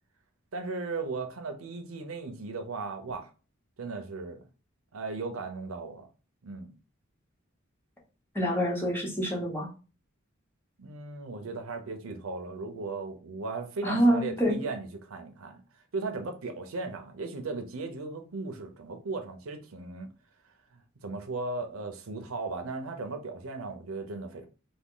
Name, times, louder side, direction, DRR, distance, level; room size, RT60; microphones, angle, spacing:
voice 1, 0.5-3.3 3.8-4.4 4.9-6.0 6.4-6.7 10.8-15.6 15.9-20.1 20.7-24.5, right 3 dB, 90° right, 0.7 m, -37 dB
voice 2, 8.3-9.7 13.8-14.6, equal, 10° left, 1.1 m, -26 dB
3.5 x 2.3 x 3.7 m
head